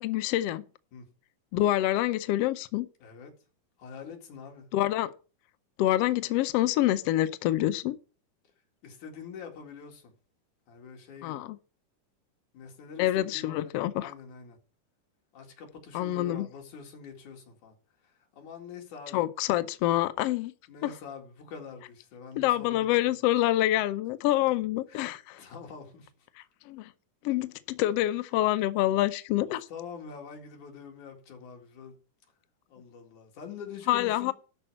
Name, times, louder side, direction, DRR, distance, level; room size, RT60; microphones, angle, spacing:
voice 1, 0.0-0.6 1.5-2.9 4.7-5.1 5.8-8.0 11.2-11.6 13.0-14.1 15.9-16.5 19.1-20.5 20.8-20.9 22.4-25.2 26.7-26.9 27.2-29.7 33.9-34.3, left 14 dB, 85° left, 1.3 m, -26 dB
voice 2, 3.0-3.3 3.8-4.7 8.8-10.1 10.7-11.5 12.5-14.6 15.3-17.7 18.4-19.2 20.7-22.9 24.9-26.1 29.7-31.9 32.7-34.3, left 6 dB, 70° left, 3.5 m, -45 dB
12.0 x 4.4 x 7.7 m
omnidirectional pair, 3.7 m